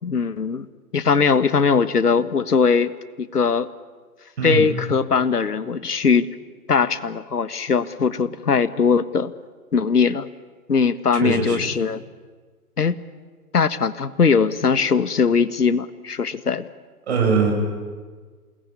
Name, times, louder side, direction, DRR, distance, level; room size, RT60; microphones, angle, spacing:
voice 1, 0.0-0.7 0.9-2.9 3.2-3.7 4.4-6.3 6.7-9.3 9.7-10.3 10.7-12.0 12.8-13.0 13.5-16.7, left 5 dB, 80° left, 14 dB, 1.6 m, -20 dB
voice 2, 11.1-11.7 17.1-17.5, right 5 dB, 45° right, 2 dB, 7.9 m, -21 dB
28.0 x 20.5 x 9.7 m, 1.5 s
hypercardioid pair, 150°, 45 cm